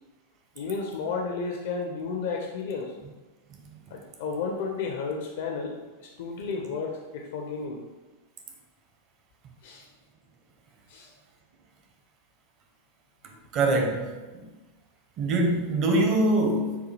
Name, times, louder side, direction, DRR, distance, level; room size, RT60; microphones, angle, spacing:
voice 1, 0.6-3.0 3.9-7.8 9.6-9.9 10.9-11.1, left 4 dB, 55° left, 1 dB, 0.5 m, -32 dB
voice 2, 13.5-14.1 14.3-14.4 15.2-16.8, right 2 dB, 35° right, 2 dB, 0.7 m, -23 dB
6.7 x 2.3 x 3.2 m, 1.2 s
figure-of-eight pair, 90°, 0 cm